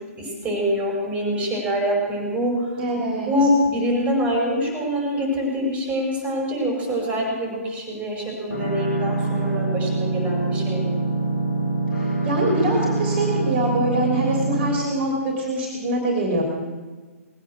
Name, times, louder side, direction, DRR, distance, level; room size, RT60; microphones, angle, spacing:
voice 1, 0.0-2.8 3.3-11.0, equal, 15° right, 0 dB, 5.6 m, -25 dB
voice 2, 2.8-3.3 11.9-16.4, right 1 dB, 40° right, 0 dB, 3.3 m, -24 dB
sound 1, 8.5-14.7, right 3 dB, 80° left, 3.9 m, -24 dB
20.0 x 9.5 x 6.6 m, 1.3 s
figure-of-eight pair, 125°, 8 cm